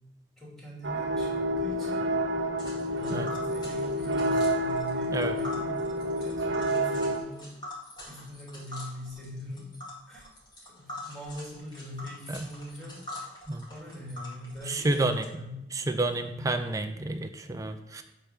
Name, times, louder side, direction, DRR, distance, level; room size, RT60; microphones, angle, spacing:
voice 1, 0.4-2.1 2.8-7.5 8.1-9.8 10.1-10.3 10.7-13.1 13.7-16.0 16.3-16.4, left 1 dB, ahead, -7 dB, 3.0 m, -42 dB
sound 1, 0.8-7.2, right 1 dB, 80° right, 0.8 m, -29 dB
Tick, 2.6-15.2, left 1 dB, 25° left, 2.0 m, -45 dB
voice 2, 14.7-15.2 15.8-18.0, right 2 dB, 20° right, 6 dB, 0.4 m, -29 dB
8.3 x 3.6 x 5.9 m, 0.86 s
head